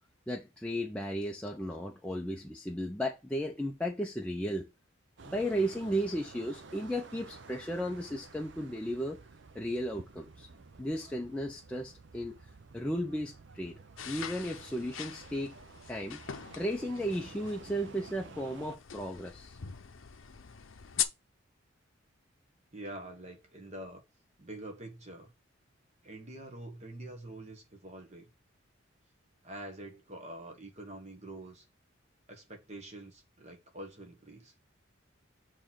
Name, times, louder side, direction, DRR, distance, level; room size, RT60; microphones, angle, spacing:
voice 1, 0.3-4.7 5.2-9.2 9.5-10.5 10.8-12.3 12.7-13.8 14.1-15.5 15.9-16.2 16.6-19.6, equal, 5° left, 0.5 m, -35 dB
sound 1, 5.2-18.8, right 4 dB, 55° right, 0.6 m, -52 dB
sound 2, 14.0-21.0, left 10 dB, 70° left, 0.7 m, -41 dB
voice 2, 22.7-24.0 24.4-25.3 26.0-28.2 29.4-31.7 32.3-34.5, right 1 dB, 30° right, 1.3 m, -46 dB
6.8 x 3.1 x 5.6 m
head